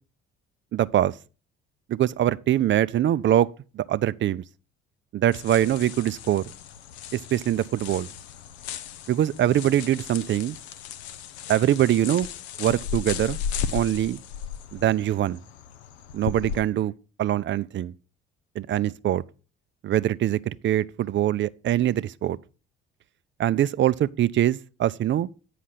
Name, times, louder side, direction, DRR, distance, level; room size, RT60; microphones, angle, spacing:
voice 1, 0.7-1.1 1.9-4.4 5.1-6.4 7.1-8.1 9.1-10.6 11.5-12.3 12.6-13.4 13.7-14.2 14.7-15.4 16.1-16.9 17.2-17.9 18.6-19.2 19.8-22.4 23.4-25.3, right 12 dB, 40° right, 0.4 m, -23 dB
sound 1, 5.3-16.6, left 8 dB, 85° left, 0.5 m, -36 dB
8.5 x 5.0 x 5.7 m
hypercardioid pair, 55°, 32 cm